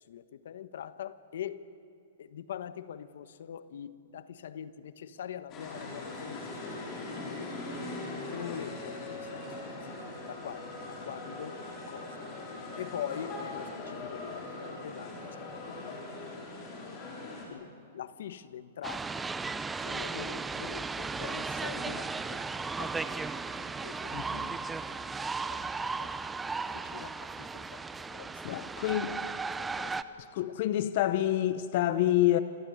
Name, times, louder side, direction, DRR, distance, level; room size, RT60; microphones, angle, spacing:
voice 1, 0.1-1.7 2.2-6.4 7.4-7.5 8.3-9.4 9.9-10.0 10.3-11.5 11.9-12.2 12.8-16.0 17.5-17.7 17.9-19.2 19.8-22.4 22.8-22.9 23.8-24.2 25.5-25.6 26.9-27.8 28.1-28.7 29.8-30.0, left 9 dB, 70° left, 14 dB, 1.2 m, -42 dB
sound 1, 5.5-17.4, left 2 dB, 25° left, 5.7 m, -41 dB
sound 2, 18.8-30.0, right 4 dB, 10° right, 0.6 m, -36 dB
voice 2, 24.1-24.6 28.4-29.2 30.3-32.4, left 13 dB, 45° left, 12 dB, 0.9 m, -27 dB
28.0 x 16.5 x 9.6 m, 2.7 s
hypercardioid pair, 160°, 0 cm